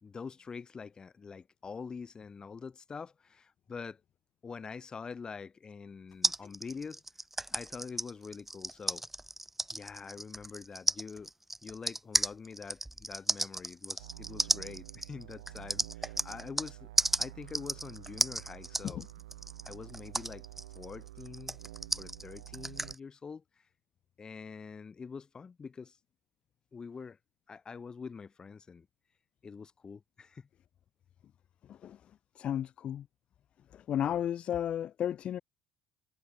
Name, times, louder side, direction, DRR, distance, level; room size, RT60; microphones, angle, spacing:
voice 1, 0.0-4.0 4.4-7.0 7.5-9.1 9.7-11.3 11.6-16.9 17.2-19.0 19.6-20.4 20.7-21.6 21.9-23.4 24.2-26.0 26.7-27.2 27.5-28.9 29.4-30.5, left 5 dB, 30° left, 2.1 m, -45 dB
sound 1, 6.2-16.7 17.0-22.9, right 1 dB, 10° right, 0.7 m, -33 dB
sound 2, 14.0-22.9, right 17 dB, 80° right, 0.5 m, -49 dB
voice 2, 32.4-33.1 33.7-35.4, left 10 dB, 50° left, 0.6 m, -33 dB
hypercardioid pair, 60°, 2 cm